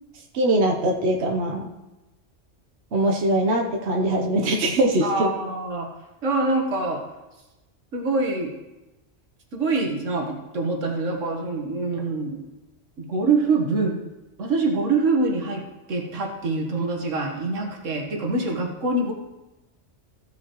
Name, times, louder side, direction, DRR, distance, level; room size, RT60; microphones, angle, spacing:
voice 1, 0.3-1.7 2.9-5.3, right 1 dB, 60° right, 1 dB, 1.2 m, -22 dB
voice 2, 5.0-5.9 6.2-7.0 7.9-8.5 9.5-12.4 13.0-13.9 14.4-19.1, right 3 dB, 90° right, 1 dB, 1.7 m, -25 dB
15.5 x 7.5 x 3.0 m, 1.0 s
omnidirectional pair, 1.3 m